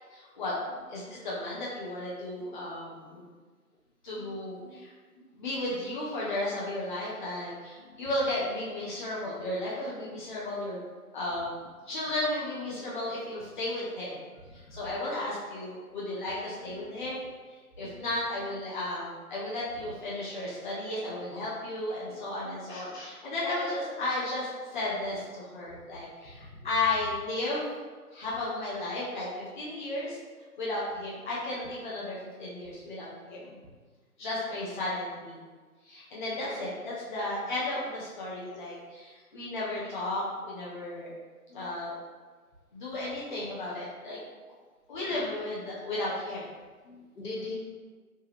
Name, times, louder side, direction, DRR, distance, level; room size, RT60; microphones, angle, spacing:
voice 1, 0.1-0.5 0.9-3.2 4.0-4.9 5.3-10.8 11.1-14.2 14.5-17.2 17.8-27.7 28.1-30.2 30.6-33.6 34.2-35.4 35.8-41.1 41.5-42.0 42.7-44.2 44.9-46.5, left 2 dB, 30° left, -7 dB, 0.8 m, -34 dB
voice 2, 9.7-10.1 11.4-11.5 14.4-15.0 16.6-16.9 17.8-18.0 18.4-18.5 19.7-19.9 21.6-21.7 22.4-23.1 25.6-25.8 26.4-26.7 36.2-36.4 39.8-39.9 41.5-41.7 43.3-43.5 45.0-45.3 46.8-47.6, left 2 dB, 85° left, -4 dB, 1.5 m, -45 dB
3.4 x 3.3 x 2.9 m, 1.4 s
figure-of-eight pair, 150°, 46 cm